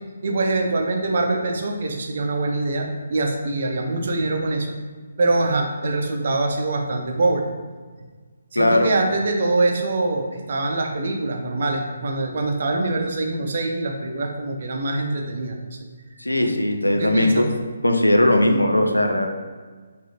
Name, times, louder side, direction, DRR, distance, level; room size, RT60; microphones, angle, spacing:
voice 1, 0.2-4.8 5.2-7.4 8.5-15.6 16.4-16.5 16.9-17.5, right 2 dB, 50° right, 2 dB, 0.6 m, -24 dB
voice 2, 8.6-9.1 16.2-17.4 17.8-19.3, left 1 dB, 85° left, 4 dB, 0.4 m, -19 dB
4.9 x 2.7 x 2.9 m, 1.5 s
figure-of-eight pair, 140°, 0 cm